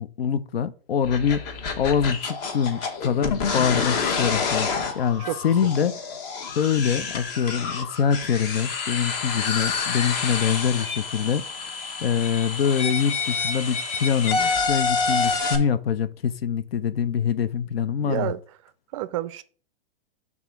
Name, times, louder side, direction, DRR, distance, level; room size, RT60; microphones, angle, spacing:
voice 1, 0.0-1.5 1.8-4.7 4.9-5.9 6.6-18.3, left 7 dB, 85° left, 0.6 m, -24 dB
sound 1, 1.0-15.6, left 4 dB, 45° left, 1.3 m, -28 dB
voice 2, 5.3-5.7 18.0-18.4 18.9-19.4, right 13 dB, 35° right, 0.4 m, -30 dB
6.0 x 3.6 x 5.6 m
hypercardioid pair, 135°, 29 cm